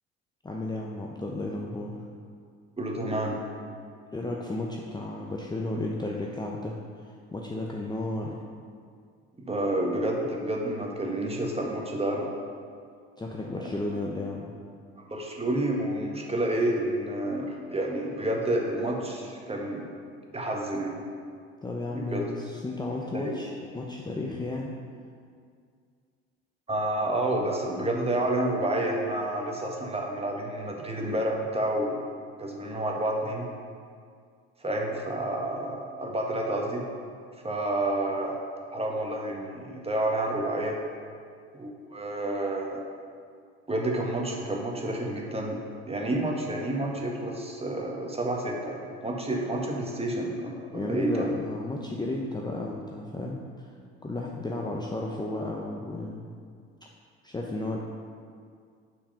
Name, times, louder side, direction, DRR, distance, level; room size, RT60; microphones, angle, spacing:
voice 1, 0.4-2.0 4.1-6.8 7.0-8.4 13.2-14.5 21.6-24.7 50.7-53.7 54.0-56.3 57.2-57.8, left 2 dB, 10° left, -1 dB, 0.8 m, -33 dB
voice 2, 2.8-3.4 9.4-12.4 15.1-19.9 20.3-21.0 21.9-22.2 23.1-23.3 26.7-32.0 32.4-33.4 34.6-36.8 37.4-38.4 38.7-40.8 41.5-42.8 43.7-51.3, right 1 dB, 15° right, 0 dB, 1.6 m, -29 dB
7.2 x 4.9 x 5.6 m, 2.1 s
hypercardioid pair, 65°, 34 cm